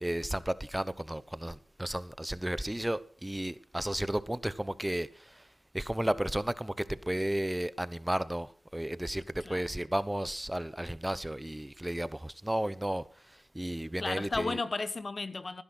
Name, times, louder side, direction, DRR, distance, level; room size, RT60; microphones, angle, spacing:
voice 1, 0.0-5.4 5.7-13.0 13.5-14.6, right 1 dB, 15° right, 0.9 m, -33 dB
voice 2, 14.0-15.6, left 3 dB, 50° left, 1.1 m, -34 dB
17.5 x 10.5 x 6.1 m
cardioid pair, 50°, 0 cm